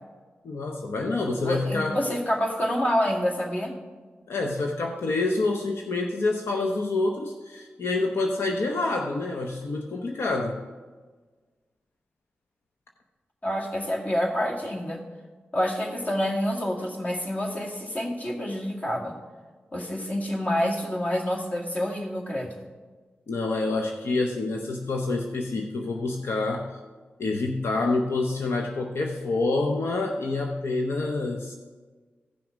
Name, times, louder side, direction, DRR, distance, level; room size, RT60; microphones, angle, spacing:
voice 1, 0.4-2.0 4.3-10.6 23.3-26.7 27.2-31.6, left 3 dB, 75° left, 2 dB, 0.8 m, -27 dB
voice 2, 1.4-3.7 13.4-15.0 15.5-19.2 19.7-22.5, equal, 40° left, -1 dB, 2.1 m, -27 dB
15.5 x 6.0 x 5.2 m, 1.4 s
cardioid pair, 70°, 4 cm